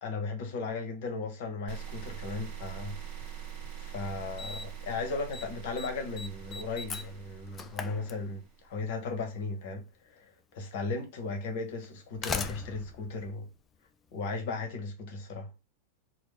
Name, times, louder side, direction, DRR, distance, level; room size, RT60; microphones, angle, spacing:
voice 1, 0.0-3.4 3.8-13.5 14.1-15.5, left 3 dB, 50° left, 0.9 m, -36 dB
sound 1, 1.7-8.8, right 9 dB, 45° right, 0.9 m, -44 dB
Slam, 3.6-3.7 4.4-4.8 5.1-5.5 5.8-8.7 9.8-9.9 10.8-10.9 11.8-14.2, left 5 dB, 20° left, 0.3 m, -39 dB
2.9 x 2.1 x 3.5 m
figure-of-eight pair, 90°, 0 cm